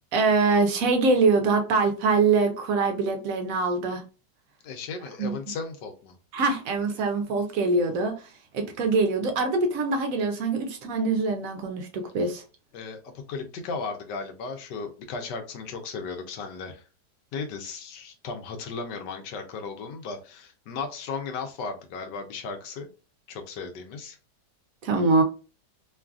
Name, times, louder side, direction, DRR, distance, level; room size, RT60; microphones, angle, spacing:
voice 1, 0.1-4.0 5.2-5.3 6.3-12.4 24.8-25.2, right 3 dB, 70° right, 0.8 m, -24 dB
voice 2, 4.6-6.2 12.7-16.9 17.3-22.9 23.3-24.2, left 4 dB, 85° left, 1.3 m, -36 dB
3.1 x 2.4 x 2.3 m
omnidirectional pair, 1.8 m